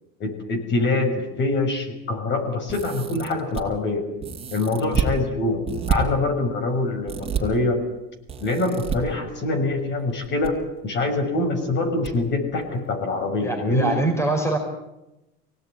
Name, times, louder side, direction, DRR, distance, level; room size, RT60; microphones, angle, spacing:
voice 1, 0.2-4.0 4.5-5.6 5.9-7.8 8.4-10.5 10.8-13.9, left 2 dB, 35° left, 4 dB, 6.3 m, -24 dB
sound 1, 2.7-3.6 4.2-5.1 5.7-6.0 7.1-7.4 8.3-9.0 10.1-10.5 10.8-10.9 12.0-12.1 12.5-12.6, right 7 dB, 20° right, 4.9 m, -28 dB
voice 2, 13.4-14.6, right 2 dB, 10° left, 2 dB, 4.8 m, -23 dB
24.0 x 18.5 x 9.7 m, 0.96 s
supercardioid pair, 135°, 30 cm